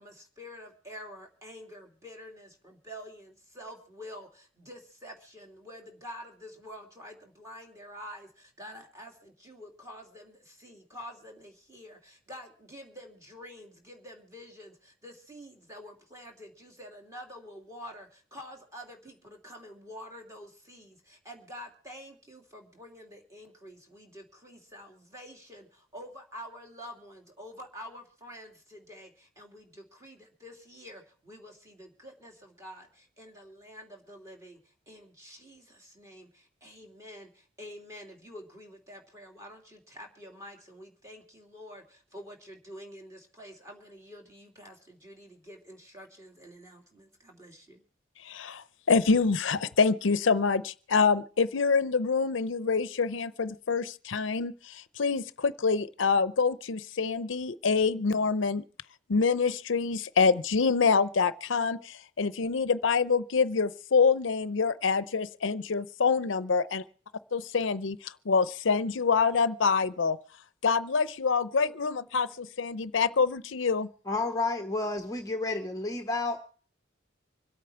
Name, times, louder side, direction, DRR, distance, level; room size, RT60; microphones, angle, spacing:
voice 1, 0.0-47.8, equal, 15° right, 2.8 m, -48 dB
voice 2, 48.2-58.6 59.1-66.8 67.3-70.2 70.6-73.9, left 5 dB, 85° left, 0.6 m, -26 dB
voice 3, 74.1-76.4, left 3 dB, 20° left, 0.9 m, -30 dB
26.0 x 8.6 x 4.5 m
head